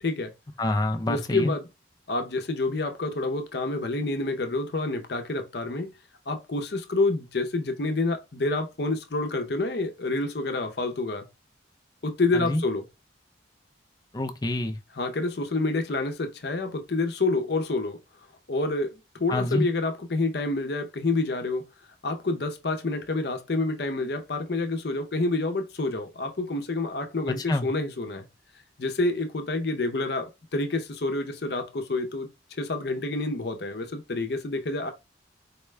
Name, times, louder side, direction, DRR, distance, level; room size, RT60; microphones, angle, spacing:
voice 1, 0.0-0.3 1.1-1.7 2.1-5.9 6.3-11.3 12.0-12.8 15.0-18.0 18.5-21.6 22.0-28.3 28.8-34.9, left 2 dB, 60° left, 0.6 m, -28 dB
voice 2, 0.6-1.5 12.3-12.6 14.1-14.8 19.3-19.7 27.5-27.7, left 1 dB, 20° left, 0.4 m, -26 dB
4.3 x 2.2 x 3.2 m
head